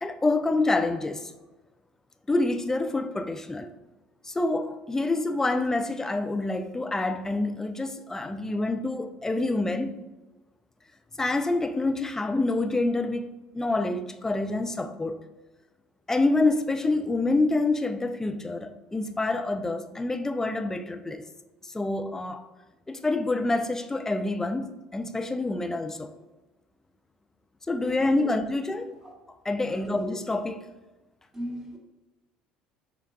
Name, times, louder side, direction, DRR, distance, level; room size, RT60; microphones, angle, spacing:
voice 1, 0.0-1.3 2.3-3.7 4.2-10.0 11.2-15.2 16.1-21.2 21.6-22.5 22.9-26.1 27.7-29.0 29.5-30.6, left 2 dB, 15° left, 0.4 m, -27 dB
voice 2, 27.8-28.3 29.7-30.2 31.3-31.8, equal, 15° right, 1.1 m, -37 dB
6.5 x 2.3 x 2.3 m
hypercardioid pair, 70°, 3 cm